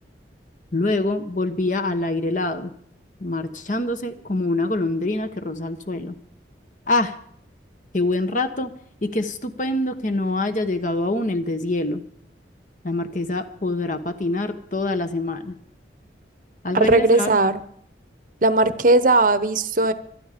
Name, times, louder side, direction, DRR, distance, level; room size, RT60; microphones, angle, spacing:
voice 1, 0.7-2.7 3.2-6.1 6.9-7.2 7.9-8.7 9.0-12.0 12.8-15.5 16.6-17.4, left 2 dB, 45° left, 8 dB, 1.2 m, -25 dB
voice 2, 16.7-17.6 18.4-19.9, right 2 dB, 45° right, 12 dB, 0.9 m, -18 dB
25.0 x 9.8 x 5.1 m, 0.65 s
head